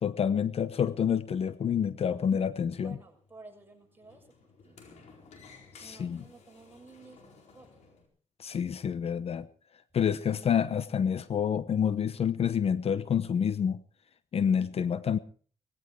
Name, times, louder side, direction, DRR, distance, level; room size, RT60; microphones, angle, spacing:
voice 1, 0.0-3.0 5.8-6.2 8.4-9.5 9.9-13.8 14.3-15.2, left 8 dB, 60° left, 15 dB, 0.9 m, -28 dB
Sliding door, 1.2-8.1, left 4 dB, 75° left, 4.5 m, -57 dB
voice 2, 2.7-4.3 4.6-4.8 5.8-7.7, right 3 dB, 15° right, 1 dB, 6.5 m, -53 dB
18.5 x 15.5 x 4.6 m, 0.43 s
cardioid pair, 75°, 12 cm